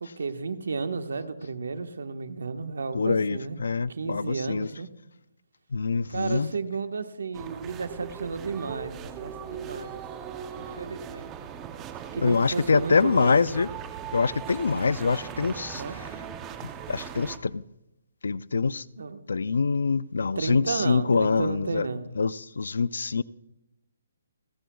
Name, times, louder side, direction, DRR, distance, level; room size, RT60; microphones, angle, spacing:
voice 1, 0.0-3.6 3.9-4.9 6.1-11.3 12.1-13.4 15.8-16.0 19.0-19.2 20.3-22.0, right 4 dB, 85° right, 8 dB, 1.3 m, -33 dB
voice 2, 2.9-4.7 5.7-6.5 12.2-13.7 14.1-15.8 16.9-17.6 18.2-18.8 19.3-21.9 22.2-23.2, left 4 dB, 85° left, 19 dB, 0.4 m, -25 dB
sound 1, 7.3-17.4, right 8 dB, 15° right, 0.7 m, -39 dB
29.5 x 10.0 x 2.3 m, 0.88 s
hypercardioid pair, 170°, 0 cm